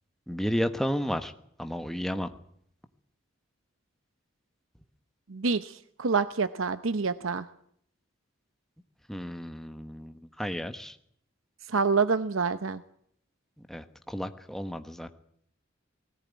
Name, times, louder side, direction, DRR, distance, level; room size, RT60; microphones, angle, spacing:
voice 1, 0.3-1.3 1.6-2.3 9.1-10.9 13.7-15.1, equal, ahead, 8 dB, 1.3 m, -32 dB
voice 2, 5.3-7.5 11.7-12.8, right 4 dB, 85° right, 13 dB, 0.8 m, -27 dB
20.0 x 18.0 x 9.5 m, 0.68 s
head